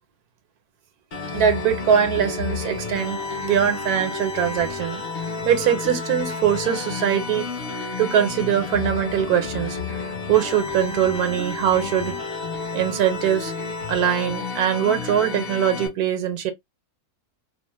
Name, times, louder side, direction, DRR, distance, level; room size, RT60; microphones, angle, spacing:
sound 1, 1.1-15.9, left 4 dB, 45° left, 1.0 m, -31 dB
voice 1, 1.3-5.0 5.4-7.5 8.0-9.8 10.3-12.1 12.7-13.5 13.9-16.5, right 9 dB, 75° right, 1.2 m, -22 dB
2.9 x 2.0 x 2.9 m
omnidirectional pair, 1.6 m